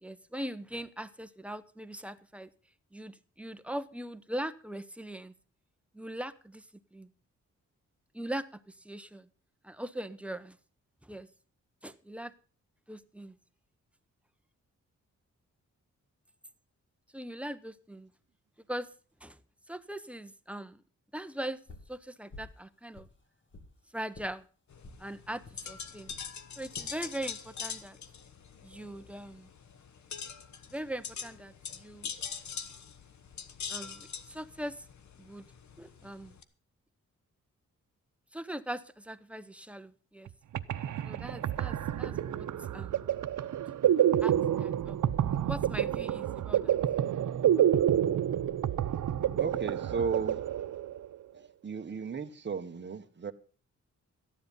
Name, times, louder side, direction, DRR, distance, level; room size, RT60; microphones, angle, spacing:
voice 1, 0.0-2.5 2.9-5.3 5.9-6.6 6.9-7.1 8.1-9.3 9.6-10.6 11.0-11.3 11.8-12.3 12.9-13.3 17.1-18.1 18.7-18.9 19.2-19.4 19.7-20.8 21.1-21.6 21.9-23.1 23.9-24.5 25.0-26.1 26.6-28.0 28.6-29.5 30.7-32.1 33.7-34.8 35.2-35.4 35.8-36.4 38.3-40.3 41.0-42.5 42.7-43.0 43.4-43.6 44.2-45.0 45.4-46.7, right 1 dB, 5° right, 0.7 m, -40 dB
sound 1, 21.7-22.0 22.3-22.6 22.9-23.7 24.1-24.3 24.8-25.0 25.5-25.6 26.1-26.3 26.7-26.9 27.5-27.9, left 2 dB, 40° left, 2.5 m, -50 dB
sound 2, 24.7-36.4, left 7 dB, 70° left, 1.1 m, -43 dB
sound 3, 40.3-40.4 40.5-51.2, right 10 dB, 85° right, 0.7 m, -28 dB
voice 2, 49.4-50.4 51.3-53.3, right 5 dB, 40° right, 1.1 m, -35 dB
14.0 x 10.5 x 5.4 m
wide cardioid pair, 120°, 30 cm